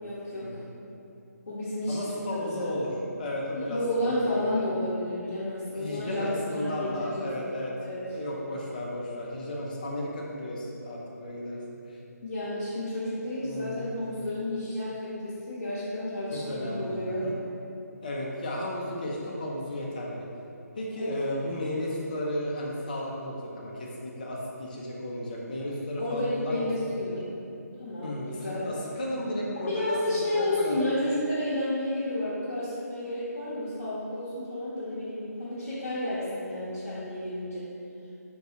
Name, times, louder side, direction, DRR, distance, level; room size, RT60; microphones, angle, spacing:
voice 1, 0.0-0.6 1.5-2.7 3.5-7.2 7.8-8.0 12.2-17.3 26.0-27.2 27.8-28.7 29.5-37.7, left 1 dB, 60° left, -11 dB, 0.7 m, -31 dB
voice 2, 1.9-2.9 3.2-3.8 4.0-4.6 5.7-11.6 11.9-12.0 13.4-13.8 14.2-14.3 16.3-17.3 18.0-20.3 20.7-27.2 28.0-30.0 30.3-30.8, left 1 dB, 30° left, -4 dB, 0.4 m, -34 dB
3.6 x 2.3 x 2.8 m, 2.8 s
figure-of-eight pair, 150°, 9 cm